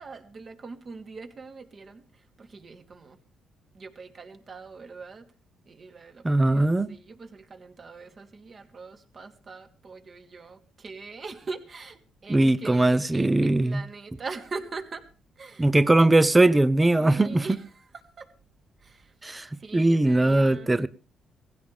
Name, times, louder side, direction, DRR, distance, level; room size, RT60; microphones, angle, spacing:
voice 1, 0.0-3.2 3.7-5.3 5.6-15.1 15.4-15.7 16.0-16.1 17.0-17.8 18.2-18.3 18.8-19.1 19.5-20.7, right 4 dB, 40° right, 2.9 m, -42 dB
voice 2, 6.2-6.9 12.3-13.8 15.6-17.4 19.2-19.5 19.7-20.9, right 2 dB, 15° right, 0.9 m, -20 dB
19.0 x 16.0 x 3.5 m
cardioid pair, 90°, 0 cm